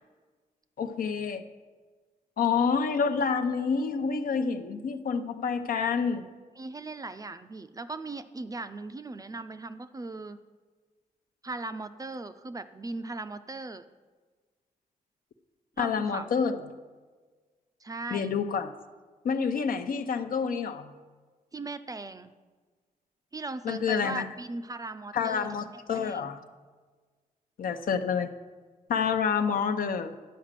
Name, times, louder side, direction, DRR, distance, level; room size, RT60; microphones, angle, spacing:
voice 1, 0.8-1.4 2.4-6.2 15.8-16.6 18.1-18.7 19.2-20.9 23.6-24.3 25.1-26.4 27.6-28.3 28.9-30.1, left 6 dB, 70° left, 8 dB, 0.8 m, -28 dB
voice 2, 6.6-10.4 11.4-13.9 15.8-16.3 17.8-18.3 21.5-22.3 23.3-25.5 25.9-26.3, right 3 dB, 25° right, 11 dB, 0.5 m, -38 dB
10.0 x 5.0 x 7.4 m, 1.4 s
cardioid pair, 95°, 15 cm